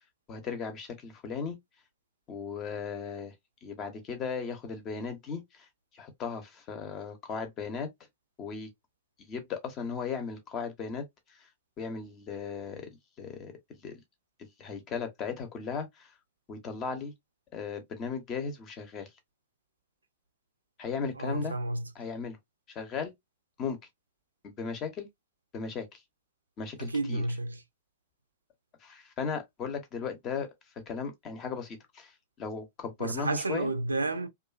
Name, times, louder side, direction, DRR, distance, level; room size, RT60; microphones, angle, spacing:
voice 1, 0.3-1.6 2.3-3.3 3.6-5.7 5.9-7.9 8.4-8.7 9.2-11.5 11.8-12.9 13.2-14.0 14.4-16.1 16.5-17.1 17.5-19.1 20.8-21.5 21.9-22.4 22.7-23.1 23.6-23.8 24.4-25.1 25.5-26.0 26.6-27.2 28.8-30.5 30.9-33.7, left 5 dB, 35° left, 0.8 m, -36 dB
voice 2, 21.2-21.9 26.8-27.6 33.0-34.3, right 2 dB, 85° right, 0.4 m, -31 dB
2.5 x 2.4 x 2.3 m
figure-of-eight pair, 95°, 0 cm